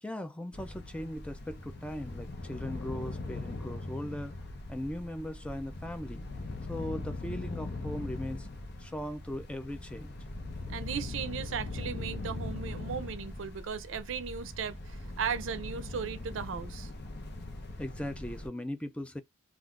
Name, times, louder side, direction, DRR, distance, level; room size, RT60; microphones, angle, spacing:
voice 1, 0.0-4.3 4.7-6.2 6.7-8.5 8.8-10.1 17.8-19.2, left 1 dB, 5° left, 0.3 m, -39 dB
sound 1, 0.5-18.5, left 2 dB, 55° left, 0.7 m, -40 dB
voice 2, 10.7-16.9, right 7 dB, 80° right, 0.4 m, -36 dB
3.6 x 2.3 x 2.3 m
head